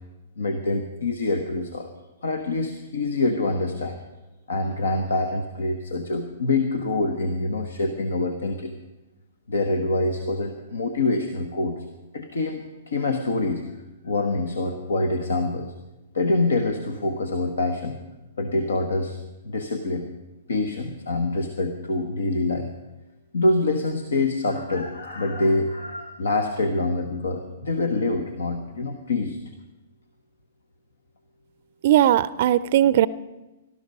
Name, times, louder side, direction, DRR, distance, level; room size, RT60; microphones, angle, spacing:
voice 1, 0.4-1.9 2.2-4.0 4.5-8.7 9.5-11.8 12.1-13.6 14.0-15.7 16.1-18.0 18.4-19.2 19.4-20.1 20.5-22.7 23.3-29.4, left 2 dB, 75° left, 7 dB, 1.2 m, -25 dB
voice 2, 31.8-33.1, right 12 dB, 50° right, 18 dB, 0.4 m, -18 dB
18.5 x 12.5 x 5.4 m, 1.0 s
figure-of-eight pair, 115°, 0 cm